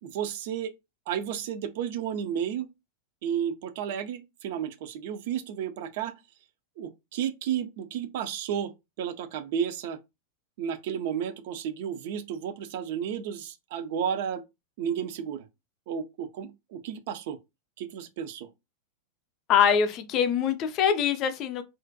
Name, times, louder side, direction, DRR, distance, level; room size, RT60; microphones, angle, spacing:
voice 1, 0.0-0.7 1.1-2.7 3.2-6.1 6.8-8.7 9.0-10.0 10.6-14.4 14.8-15.5 15.9-17.4 17.8-18.5, right 8 dB, 50° right, 0.4 m, -32 dB
voice 2, 19.5-21.6, left 8 dB, 35° left, 0.4 m, -23 dB
2.4 x 2.1 x 2.5 m
figure-of-eight pair, 90°, 0 cm